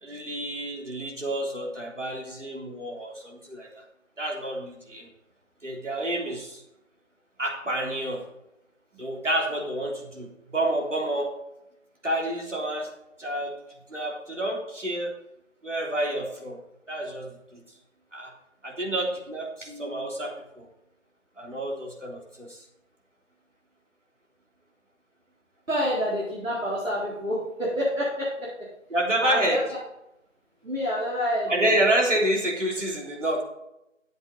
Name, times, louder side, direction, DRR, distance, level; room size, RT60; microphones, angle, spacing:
voice 1, 0.0-3.8 4.2-5.1 5.6-6.6 7.4-8.2 9.0-11.3 12.0-12.9 13.2-13.5 13.9-15.1 15.6-16.6 16.9-17.6 18.1-18.3 18.6-20.7 21.4-22.7 28.9-29.6 31.5-33.4, right 1 dB, 70° right, -2 dB, 3.5 m, -28 dB
voice 2, 25.7-28.7 29.2-29.8 30.6-31.7, equal, 90° right, -6 dB, 3.9 m, -28 dB
12.0 x 7.8 x 4.1 m, 0.86 s
figure-of-eight pair, 175°, 38 cm